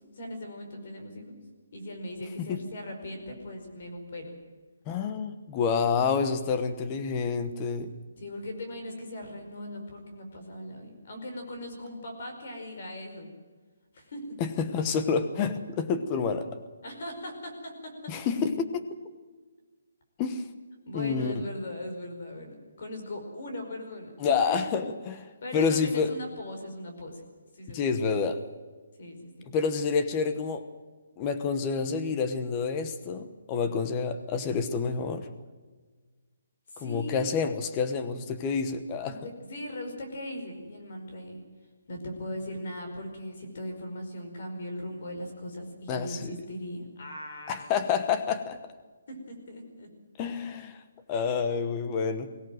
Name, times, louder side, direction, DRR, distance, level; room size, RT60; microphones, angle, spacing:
voice 1, 0.1-1.4 1.7-4.3 8.2-13.3 13.9-14.5 16.8-18.1 20.8-24.3 25.4-27.2 27.5-27.9 29.0-29.5 36.7-37.3 39.0-41.4 41.9-47.7 49.1-49.9, left 1 dB, 40° left, 4 dB, 5.1 m, -39 dB
voice 2, 4.9-7.9 14.4-16.5 18.1-18.9 20.2-20.4 20.9-21.3 24.2-26.1 27.7-28.4 29.5-30.6 31.2-35.3 36.8-39.1 45.9-46.3 47.5-48.6 50.2-50.8 51.1-52.3, left 5 dB, 15° left, 9 dB, 1.1 m, -28 dB
23.0 x 17.5 x 7.8 m, 1.4 s
hypercardioid pair, 180°, 0 cm